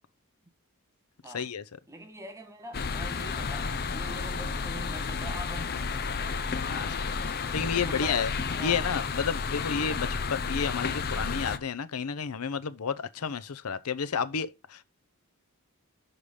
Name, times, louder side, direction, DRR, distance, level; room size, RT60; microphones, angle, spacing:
voice 1, 1.3-1.6 6.7-7.0 7.5-8.3 8.6-14.8, left 6 dB, 90° left, 0.7 m, -31 dB
voice 2, 1.9-6.0 7.6-8.2 8.5-8.9 9.8-10.2, right 1 dB, 15° right, 1.4 m, -44 dB
sound 1, 2.7-11.6, left 5 dB, 45° left, 0.7 m, -32 dB
6.7 x 5.7 x 4.8 m
head